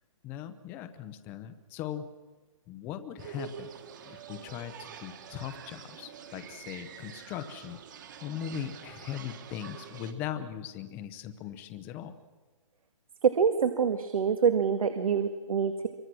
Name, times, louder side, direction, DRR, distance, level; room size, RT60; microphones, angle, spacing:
voice 1, 0.2-2.1 2.7-3.7 4.0-7.8 8.2-12.1, left 10 dB, 10° left, 10 dB, 0.7 m, -39 dB
sound 1, 3.2-10.1, right 8 dB, 35° right, 2.0 m, -46 dB
voice 2, 13.2-15.9, right 6 dB, 85° right, 7 dB, 2.0 m, -26 dB
27.0 x 24.0 x 6.2 m, 1.4 s
hypercardioid pair, 175°, 18 cm